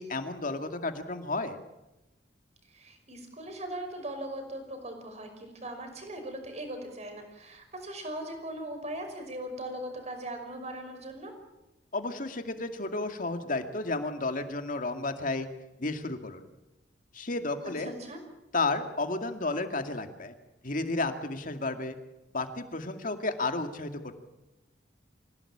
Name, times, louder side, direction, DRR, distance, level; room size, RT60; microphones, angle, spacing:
voice 1, 0.0-1.6 11.9-15.5 15.8-16.5 17.1-17.9 18.5-20.3 20.6-22.0 22.3-24.1, left 3 dB, 45° left, 7 dB, 2.2 m, -32 dB
voice 2, 2.7-11.3 17.6-18.2, right 1 dB, 40° right, 5 dB, 5.6 m, -39 dB
25.5 x 17.0 x 8.7 m, 0.98 s
head